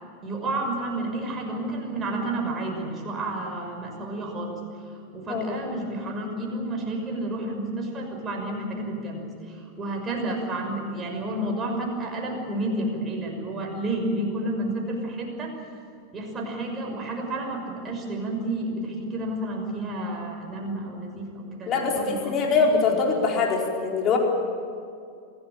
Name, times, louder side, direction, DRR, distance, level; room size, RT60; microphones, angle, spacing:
voice 1, 0.2-4.6 5.1-9.3 9.8-15.5 16.1-23.0 23.3-23.4, right 1 dB, 20° right, 1 dB, 6.1 m, -30 dB
voice 2, 21.7-24.2, left 4 dB, 30° left, 0 dB, 4.6 m, -23 dB
27.0 x 17.0 x 9.0 m, 2.4 s
figure-of-eight pair, 90°, 0 cm